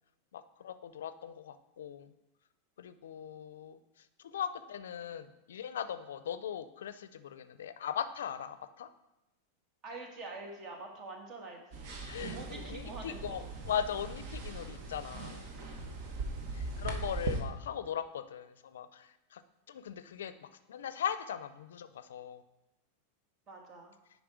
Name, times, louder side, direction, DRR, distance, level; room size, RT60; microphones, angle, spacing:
voice 1, 0.3-2.1 2.8-3.8 4.2-8.9 12.1-15.4 16.5-19.4 19.7-22.4, left 8 dB, 85° left, 13 dB, 0.4 m, -39 dB
voice 2, 9.8-12.0 12.3-13.5 23.5-23.9, right 3 dB, 35° right, 2 dB, 1.5 m, -46 dB
sound 1, 11.7-17.4, right 3 dB, 55° right, 1.1 m, -40 dB
6.1 x 5.0 x 4.8 m, 0.95 s
hypercardioid pair, 120°, 0 cm